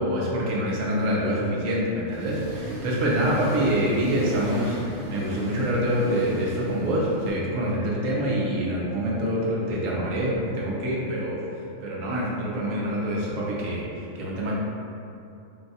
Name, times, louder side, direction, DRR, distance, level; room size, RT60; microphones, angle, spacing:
voice 1, 0.0-11.4 11.8-14.5, equal, 90° right, -4 dB, 1.2 m, -26 dB
Accelerating revving vroom, 2.1-7.3, right 1 dB, 30° right, 1.0 m, -36 dB
3.9 x 2.3 x 4.0 m, 2.6 s
omnidirectional pair, 1.3 m